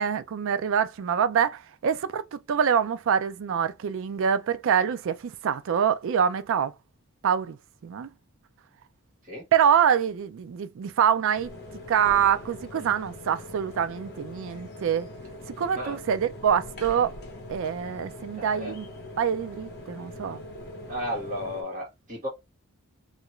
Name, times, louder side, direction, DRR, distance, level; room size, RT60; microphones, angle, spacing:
voice 1, 0.0-6.7 7.2-7.6 7.8-8.1 9.5-11.5 11.9-15.1 15.6-17.1 17.5-18.9 19.2-20.4, right 8 dB, 60° right, 0.3 m, -25 dB
sound 1, 11.3-21.6, left 1 dB, 50° left, 0.8 m, -42 dB
voice 2, 18.4-18.7 20.9-22.3, equal, 40° right, 1.6 m, -33 dB
2.8 x 2.5 x 3.0 m
head